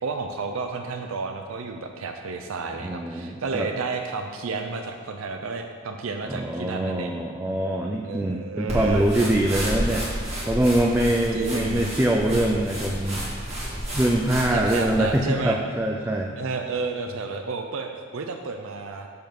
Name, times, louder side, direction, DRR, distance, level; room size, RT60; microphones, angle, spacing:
voice 1, 0.0-7.2 8.0-9.1 11.3-11.9 14.5-15.6 16.4-19.1, right 4 dB, 85° right, 5 dB, 0.5 m, -31 dB
voice 2, 2.8-3.7 6.2-13.3 13.9-16.3, right 1 dB, 10° right, 0 dB, 0.4 m, -24 dB
sound 1, 8.7-15.2, equal, 30° right, 1.9 m, -31 dB
6.7 x 5.5 x 5.9 m, 2.1 s
head